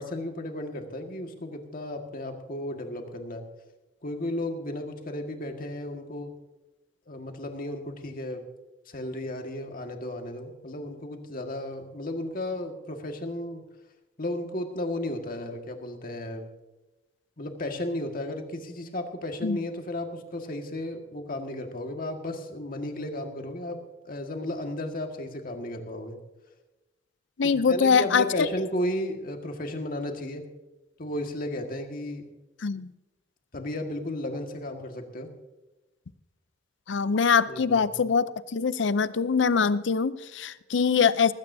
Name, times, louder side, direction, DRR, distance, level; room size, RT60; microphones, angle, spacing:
voice 1, 0.0-3.4 4.0-6.3 7.1-8.4 8.9-13.6 14.2-16.5 17.4-23.8 24.0-26.2 27.4-30.5 31.0-32.2 33.5-35.3 37.5-38.1, left 1 dB, 50° left, 4 dB, 1.8 m, -34 dB
voice 2, 27.4-28.2 32.6-32.9 36.9-41.3, left 5 dB, 70° left, 16 dB, 0.5 m, -23 dB
19.0 x 16.0 x 2.7 m, 1.1 s
head